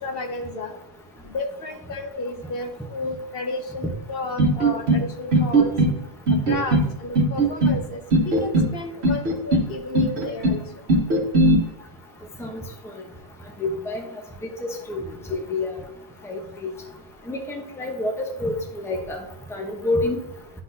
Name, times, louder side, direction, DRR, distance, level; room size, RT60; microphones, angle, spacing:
voice 1, 0.0-0.7 1.2-5.7 6.3-8.0 8.2-10.6, left 2 dB, 65° left, 4 dB, 0.9 m, -32 dB
sound 1, 4.4-5.0 5.3-5.9 6.3-6.9 7.1-7.8 8.1-8.7 9.0-9.7 9.9-10.6 10.9-11.6, right 2 dB, 75° right, 1.4 m, -18 dB
voice 2, 13.6-14.0 14.6-15.0 15.3-15.7 16.2-16.7 17.3-18.1 18.4-19.2 19.5-20.2, left 2 dB, 5° left, 2 dB, 0.8 m, -27 dB
11.5 x 4.0 x 2.7 m, 0.89 s
omnidirectional pair, 1.1 m